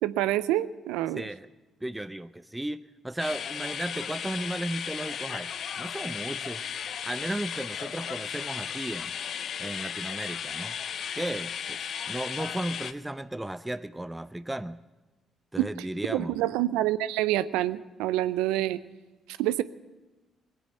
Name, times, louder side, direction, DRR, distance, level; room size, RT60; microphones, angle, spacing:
voice 1, 0.0-1.2 15.6-15.7 16.1-18.8 19.4-19.6, right 14 dB, 80° right, 15 dB, 0.5 m, -27 dB
voice 2, 1.2-1.5 1.8-5.5 5.8-6.7 7.0-9.1 9.6-10.7 11.2-11.8 12.1-14.8 15.5-16.3, right 1 dB, 10° right, 14 dB, 0.6 m, -35 dB
sound 1, 3.2-12.9, left 8 dB, 60° left, 0.6 m, -35 dB
20.0 x 8.6 x 7.8 m, 1.1 s
hypercardioid pair, 45°, 0 cm